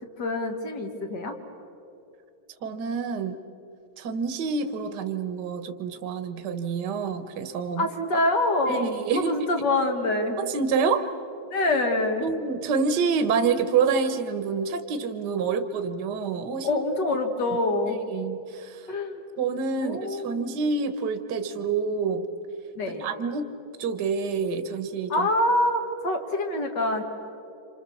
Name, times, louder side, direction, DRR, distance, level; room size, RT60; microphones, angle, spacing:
voice 1, 0.2-1.4 7.8-10.4 11.5-12.3 16.6-18.0 18.9-19.2 19.8-20.6 22.8-23.1 25.1-27.0, left 1 dB, 55° left, 4 dB, 2.6 m, -25 dB
voice 2, 2.6-3.4 4.0-7.9 8.7-9.3 10.4-11.1 12.2-16.8 18.1-18.9 19.4-22.3 23.0-23.5 23.8-25.3, right 5 dB, 60° right, 8 dB, 1.7 m, -27 dB
28.0 x 27.0 x 7.1 m, 2.8 s
omnidirectional pair, 2.2 m